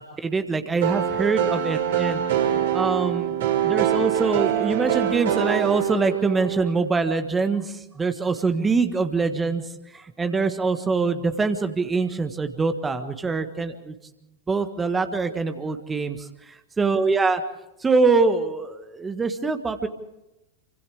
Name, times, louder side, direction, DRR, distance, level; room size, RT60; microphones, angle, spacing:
voice 1, 0.0-2.2 2.7-3.3 3.6-14.0 14.5-17.4 17.8-19.9, right 4 dB, 15° right, 8 dB, 1.5 m, -24 dB
sound 1, 0.8-6.7, right 10 dB, 60° right, 4.6 m, -24 dB
29.0 x 25.0 x 3.6 m, 0.91 s
figure-of-eight pair, 90°, 0 cm